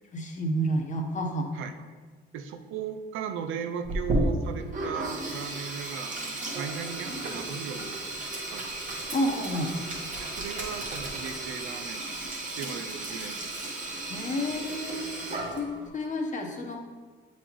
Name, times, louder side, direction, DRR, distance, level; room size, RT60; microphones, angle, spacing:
voice 1, 0.1-1.5 9.1-9.8 13.8-15.0 15.5-16.8, equal, 40° left, 2 dB, 1.0 m, -30 dB
voice 2, 2.3-8.0 8.5-9.0 10.2-12.0 12.6-13.7, right 7 dB, 90° right, 7 dB, 0.5 m, -37 dB
Sink (filling or washing), 3.8-15.9, right 2 dB, 40° right, 1.5 m, -34 dB
8.1 x 4.1 x 3.0 m, 1.4 s
cardioid pair, 90°, 20 cm